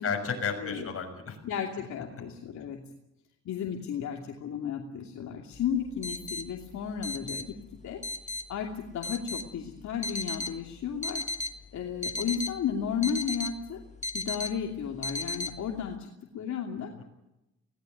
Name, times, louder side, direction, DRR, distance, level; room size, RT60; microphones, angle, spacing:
voice 1, 0.0-1.4 2.1-2.2 16.9-17.0, left 5 dB, 50° left, 4 dB, 6.6 m, -33 dB
voice 2, 1.4-2.8 3.4-7.6 7.8-8.0 8.5-11.2 11.7-13.8 14.1-16.9, left 8 dB, 70° left, 1 dB, 2.8 m, -33 dB
sound 1, 5.5-15.9, left 2 dB, 25° left, 1.5 m, -37 dB
20.5 x 18.0 x 9.3 m, 0.92 s
cardioid pair, 90°, 30 cm